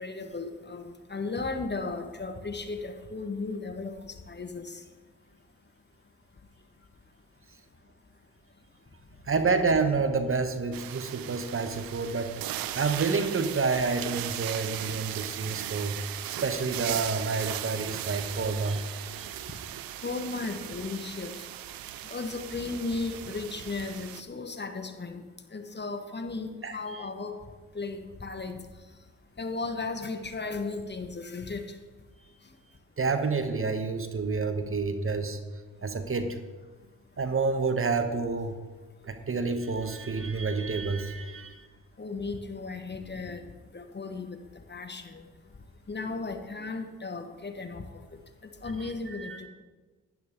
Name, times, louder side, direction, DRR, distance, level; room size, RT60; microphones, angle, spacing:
voice 1, 0.0-4.8 20.0-21.4 22.0-25.2 25.5-27.4 27.7-28.6 29.4-31.6 42.0-43.4 43.7-44.4 44.7-45.2 45.9-47.8 48.6-49.5, left 3 dB, 30° left, 7 dB, 1.3 m, -35 dB
voice 2, 9.3-12.3 12.7-18.8 19.2-19.3 26.6-27.0 33.0-35.4 35.8-36.4 37.2-38.5 39.0-41.7 48.8-49.4, right 4 dB, 35° right, 8 dB, 1.1 m, -29 dB
sound 1, 10.7-24.2, right 13 dB, 75° right, 0.7 m, -38 dB
12.0 x 10.5 x 3.7 m, 1.3 s
supercardioid pair, 50°, 36 cm